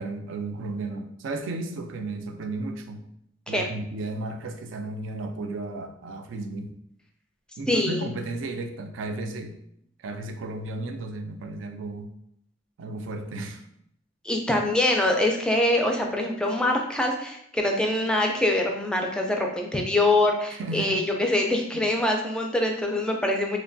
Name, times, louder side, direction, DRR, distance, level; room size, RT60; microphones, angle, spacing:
voice 1, 0.0-3.1 3.5-6.7 7.6-9.6 10.0-12.1 12.8-13.6 20.6-21.1 21.7-21.9, right 2 dB, 85° right, 6 dB, 0.4 m, -34 dB
voice 2, 7.7-8.1 14.2-23.6, left 1 dB, 5° left, 1 dB, 0.3 m, -24 dB
3.1 x 2.2 x 2.5 m, 0.73 s
head